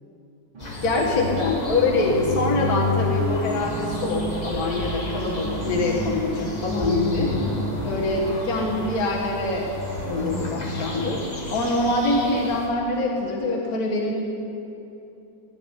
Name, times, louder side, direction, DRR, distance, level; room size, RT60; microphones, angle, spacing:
sound 1, 0.5-12.2, left 2 dB, 80° right, 2.9 m, -31 dB
sound 2, 0.6-12.7, left 1 dB, 25° left, 1.3 m, -36 dB
voice 1, 0.8-7.4 7.8-9.7 10.1-11.2 11.5-14.1, left 2 dB, 50° left, -3 dB, 2.0 m, -24 dB
sound 3, 3.6-9.6, right 2 dB, 60° right, 1.9 m, -38 dB
16.5 x 5.9 x 9.6 m, 2.8 s
omnidirectional pair, 2.2 m